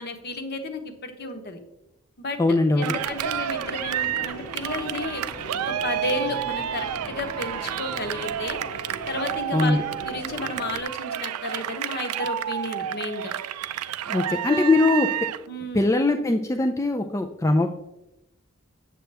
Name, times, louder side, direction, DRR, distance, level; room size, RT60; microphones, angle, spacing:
voice 1, 0.0-1.6 2.2-5.2 5.7-8.6 9.1-9.8 10.1-13.3 14.5-14.7 15.5-15.9, left 2 dB, 45° left, 7 dB, 1.0 m, -32 dB
voice 2, 2.4-2.9 9.5-9.8 14.1-15.1 15.7-17.7, left 2 dB, 15° left, 4 dB, 0.3 m, -21 dB
Cheering, 2.8-15.5, right 10 dB, 90° right, 0.4 m, -30 dB
sound 1, 2.9-10.8, equal, 85° left, 1.3 m, -41 dB
7.8 x 7.6 x 3.4 m, 0.91 s
head